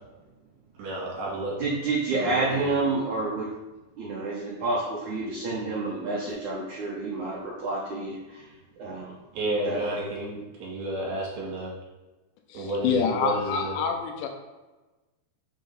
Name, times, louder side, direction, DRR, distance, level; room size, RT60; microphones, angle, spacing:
voice 1, 0.8-1.6 2.2-2.7 9.3-11.7 12.5-13.8, right 1 dB, 65° right, -5 dB, 3.1 m, -31 dB
voice 2, 1.6-3.4 4.0-8.4 8.8-9.1 9.6-9.9, right 3 dB, 80° right, -5 dB, 1.7 m, -29 dB
voice 3, 12.5-14.3, left 6 dB, 80° left, 3 dB, 2.9 m, -27 dB
6.8 x 3.7 x 5.6 m, 1.1 s
omnidirectional pair, 5.3 m